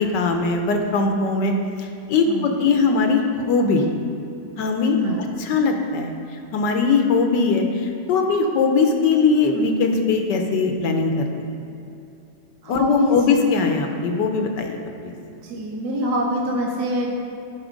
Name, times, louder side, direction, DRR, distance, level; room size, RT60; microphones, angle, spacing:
voice 1, 0.0-1.5 1.8-3.8 4.6-5.0 5.4-6.1 6.5-11.5 12.7-15.1, left 4 dB, 75° left, 4 dB, 1.4 m, -20 dB
voice 2, 12.6-13.2 15.4-17.1, equal, 65° right, 0 dB, 1.3 m, -25 dB
10.5 x 4.6 x 5.1 m, 2.7 s
omnidirectional pair, 2.0 m